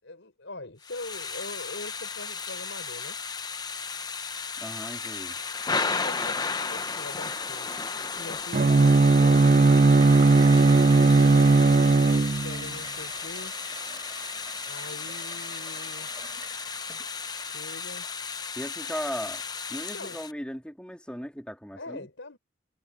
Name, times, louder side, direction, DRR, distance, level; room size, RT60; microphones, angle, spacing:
voice 1, 0.0-3.2 5.7-7.8 8.2-11.7 12.4-13.6 14.6-16.2 17.4-18.1 19.9-20.2 21.7-22.4, left 2 dB, 85° left, 4.6 m, -43 dB
Thunder / Rain, 0.8-20.3, left 5 dB, 20° left, 0.8 m, -34 dB
voice 2, 4.6-5.3 18.6-19.4 19.7-22.1, equal, 5° left, 3.5 m, -37 dB
Bowed string instrument, 8.5-12.7, right 3 dB, 40° right, 0.4 m, -18 dB
Toilet flush, 9.2-18.4, right 4 dB, 20° right, 4.1 m, -44 dB
head